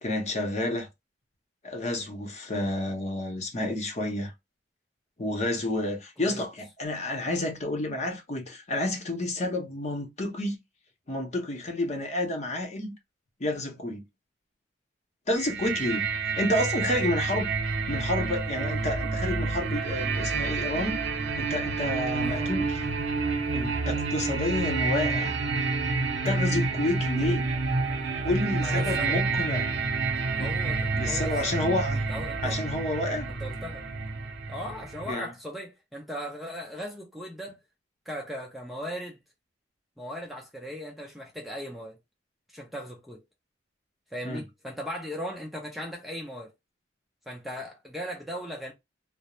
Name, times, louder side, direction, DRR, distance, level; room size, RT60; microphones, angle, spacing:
voice 1, 0.0-0.9 1.6-4.3 5.2-10.6 11.1-12.9 13.4-14.0 15.3-16.1 16.4-17.5 17.9-20.9 21.4-22.7 23.5-25.4 26.2-27.4 28.2-29.7 30.4-30.5 31.0-32.0 32.4-33.3 35.1-35.3 44.2-44.4, left 1 dB, 35° left, 0.7 m, -30 dB
sound 1, 15.4-35.1, right 4 dB, 65° right, 0.7 m, -29 dB
voice 2, 22.2-22.5 28.6-29.2 30.3-31.6 31.9-32.6 33.3-33.9 34.5-37.6 38.1-39.2 40.0-42.0 42.5-43.2 44.1-46.5 47.3-48.7, equal, ahead, 0.4 m, -38 dB
2.4 x 2.0 x 2.9 m
head